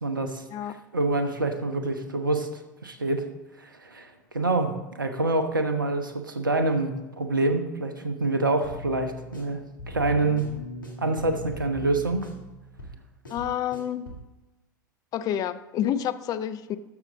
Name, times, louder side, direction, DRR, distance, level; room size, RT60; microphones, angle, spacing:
voice 1, 0.0-0.4 0.9-3.2 3.6-9.6 9.9-10.5 11.0-12.3, right 2 dB, 85° right, 7 dB, 1.0 m, -26 dB
sound 1, 8.6-14.3, left 1 dB, 85° left, 1.9 m, -40 dB
voice 2, 13.3-14.1 15.1-16.8, left 10 dB, 35° left, 12 dB, 0.6 m, -29 dB
13.0 x 6.4 x 3.9 m, 1.1 s
figure-of-eight pair, 80°, 11 cm